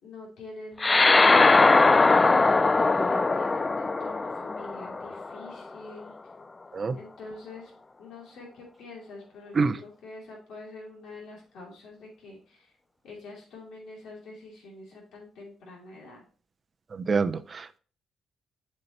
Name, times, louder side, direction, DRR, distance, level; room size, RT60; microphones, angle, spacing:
voice 1, 0.0-1.9 2.4-6.1 7.0-7.7 8.0-12.7 13.0-16.2, left 2 dB, 75° left, -2 dB, 2.8 m, -45 dB
sound 1, 0.8-5.5, left 3 dB, 25° left, 0.3 m, -21 dB
voice 2, 16.9-17.8, right 4 dB, 40° right, 12 dB, 0.5 m, -26 dB
7.7 x 5.5 x 2.9 m, 0.39 s
cardioid pair, 90°, 0 cm